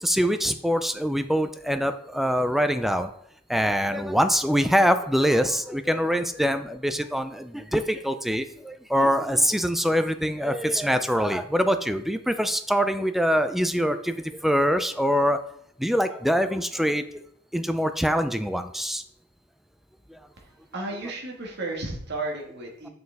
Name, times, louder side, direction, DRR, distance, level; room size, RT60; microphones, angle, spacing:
voice 1, 0.0-3.1 3.5-15.4 15.8-17.2 17.5-19.0 20.1-20.2, equal, ahead, 9 dB, 0.3 m, -24 dB
voice 2, 20.4-22.9, right 2 dB, 55° right, 0 dB, 1.7 m, -33 dB
6.6 x 6.6 x 3.5 m, 0.68 s
head